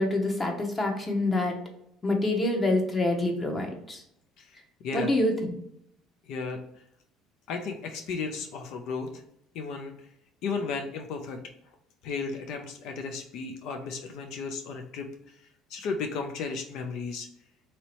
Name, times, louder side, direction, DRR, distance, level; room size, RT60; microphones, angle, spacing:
voice 1, 0.0-1.6 2.0-4.0 4.9-5.6, left 2 dB, 25° left, 2 dB, 0.8 m, -26 dB
voice 2, 6.3-6.6 7.5-9.1 9.5-9.9 10.4-11.4 12.0-15.1 15.7-17.3, left 4 dB, 70° left, 4 dB, 0.4 m, -34 dB
3.1 x 2.7 x 2.9 m, 0.75 s
supercardioid pair, 90°, 0 cm